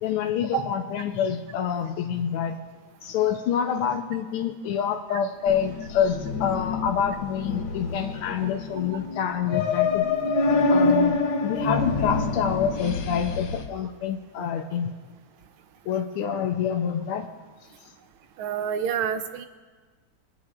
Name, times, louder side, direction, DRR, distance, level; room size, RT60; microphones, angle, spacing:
voice 1, 0.0-2.6 3.0-10.0 10.7-14.9 15.9-17.3, left 8 dB, 90° left, 5 dB, 1.6 m, -27 dB
sound 1, 5.5-13.6, left 3 dB, 70° left, 1.7 m, -26 dB
voice 2, 18.4-19.5, right 8 dB, 75° right, 9 dB, 1.4 m, -28 dB
24.0 x 9.5 x 2.4 m, 1.4 s
omnidirectional pair, 2.4 m